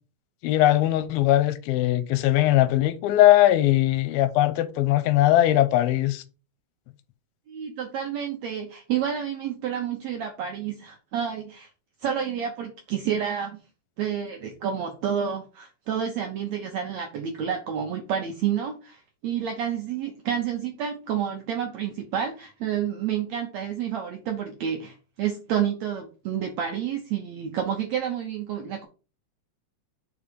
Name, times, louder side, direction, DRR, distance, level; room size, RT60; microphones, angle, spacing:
voice 1, 0.4-6.2, left 14 dB, 85° left, 2.5 m, -20 dB
voice 2, 7.5-11.7 12.0-13.6 14.0-28.9, right 8 dB, 75° right, 1.6 m, -29 dB
5.4 x 4.8 x 5.2 m
omnidirectional pair, 4.2 m